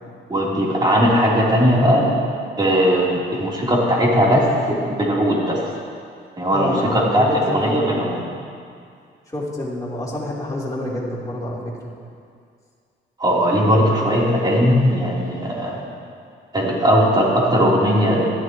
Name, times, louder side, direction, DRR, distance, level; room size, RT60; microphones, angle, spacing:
voice 1, 0.3-2.1 2.6-5.6 6.4-8.2 13.2-15.8 16.5-18.3, equal, 20° right, -5 dB, 3.8 m, -18 dB
voice 2, 6.5-8.4 9.3-11.7, left 1 dB, 15° left, -7 dB, 3.7 m, -28 dB
16.5 x 12.5 x 3.2 m, 2.2 s
cardioid pair, 90°, 20 cm